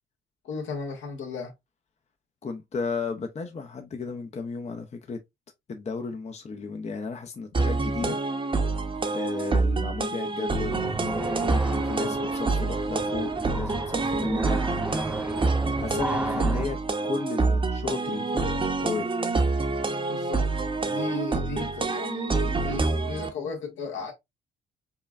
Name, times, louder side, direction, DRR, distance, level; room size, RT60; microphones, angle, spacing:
voice 1, 0.4-1.5 7.5-7.6 8.0-8.1 20.1-20.4 20.8-24.1, left 3 dB, 75° left, 1.5 m, -35 dB
voice 2, 2.4-5.2 5.7-8.2 9.1-14.6 15.8-16.8 17.1-19.1, left 4 dB, 35° left, 0.6 m, -34 dB
sound 1, 7.5-23.3, right 3 dB, 25° right, 0.8 m, -27 dB
sound 2, 10.7-16.7, right 2 dB, 5° right, 0.4 m, -33 dB
5.5 x 2.2 x 2.4 m
cardioid pair, 90°, 20 cm